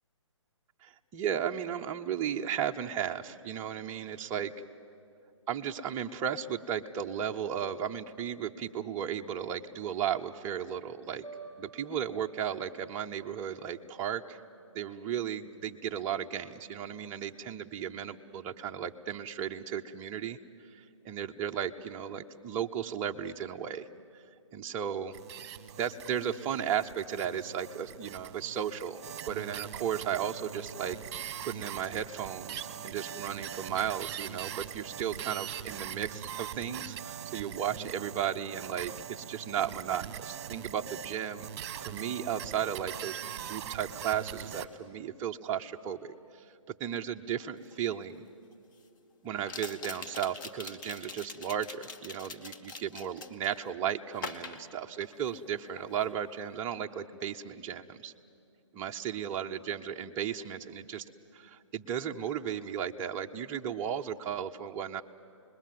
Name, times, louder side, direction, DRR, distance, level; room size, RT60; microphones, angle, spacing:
voice 1, 0.8-4.5 5.5-11.2 11.6-14.4 14.7-20.4 20.7-23.9 24.5-25.2 25.7-31.0 31.4-41.5 41.8-43.2 43.5-46.1 46.7-48.2 49.2-58.1 58.7-61.0 61.3-65.0, right 9 dB, 15° right, 3 dB, 0.5 m, -35 dB
sound 1, 11.2-14.3, right 3 dB, 15° left, 6.5 m, -52 dB
sound 2, 25.1-44.7, right 9 dB, 30° right, 1.1 m, -42 dB
sound 3, 47.7-47.8 49.4-53.6 54.2-55.5 55.8-56.1, left 4 dB, 40° left, 1.1 m, -43 dB
27.0 x 21.0 x 7.5 m, 2.4 s
hypercardioid pair, 150°, 17 cm